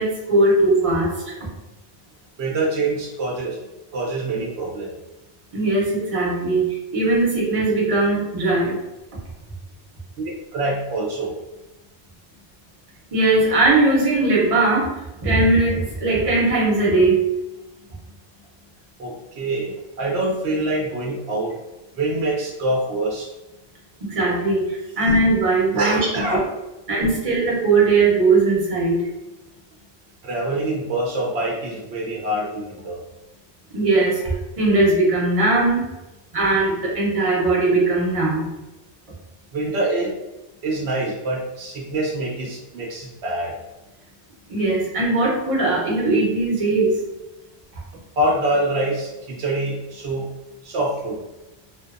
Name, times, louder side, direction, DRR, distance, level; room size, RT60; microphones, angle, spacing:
voice 1, 0.0-1.3 5.5-8.8 13.1-14.9 15.2-17.2 24.0-26.0 26.3-26.4 26.9-29.1 33.7-35.9 36.3-38.5 44.5-47.0, right 2 dB, 35° right, -4 dB, 0.7 m, -19 dB
voice 2, 2.4-3.6 3.9-4.9 10.2-11.3 19.0-21.5 21.9-23.3 25.7-26.5 30.2-33.0 39.5-40.2 40.6-43.5 48.1-50.3 50.6-51.2, right 1 dB, 70° right, -2 dB, 0.8 m, -25 dB
2.7 x 2.2 x 2.4 m, 1.0 s
omnidirectional pair, 1.2 m